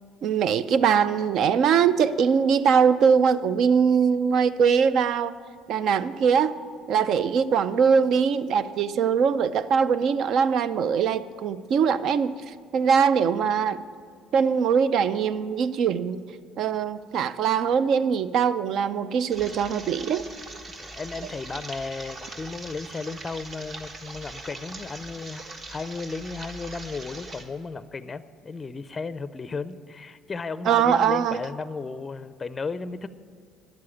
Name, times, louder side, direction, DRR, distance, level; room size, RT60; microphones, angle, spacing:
voice 1, 0.2-5.3 5.7-6.5 6.9-12.3 12.7-13.8 14.3-16.2 16.6-20.2 30.7-31.4, right 6 dB, 65° right, 0.5 m, -22 dB
sound 1, 19.3-27.4, right 2 dB, 45° right, 1.4 m, -41 dB
voice 2, 20.8-33.1, left 4 dB, 30° left, 0.4 m, -34 dB
10.5 x 7.6 x 8.5 m
supercardioid pair, 80°, 0 cm